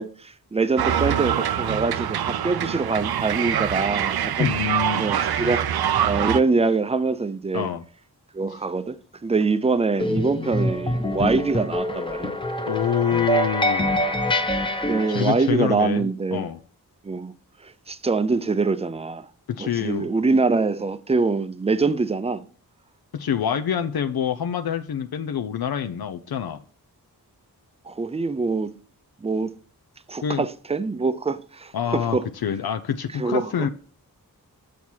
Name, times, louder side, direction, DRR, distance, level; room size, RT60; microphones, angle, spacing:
voice 1, 0.0-4.5 5.0-5.7 6.0-7.7 8.3-12.3 14.2-14.5 14.8-16.5 17.0-17.3 17.6-19.3 19.6-22.4 27.9-28.7 29.2-29.5 30.1-32.3 33.2-33.5, right 4 dB, 15° right, 0.5 m, -24 dB
sound 1, 0.8-6.4, right 9 dB, 80° right, 0.5 m, -24 dB
voice 2, 4.4-5.0 7.5-7.8 12.7-13.9 15.1-16.1 16.3-16.6 19.5-20.1 23.1-26.6 30.2-30.5 31.7-33.7, left 8 dB, 80° left, 0.6 m, -26 dB
sound 2, 10.0-15.5, left 1 dB, 15° left, 0.8 m, -25 dB
7.1 x 6.4 x 4.4 m
wide cardioid pair, 105°, 37 cm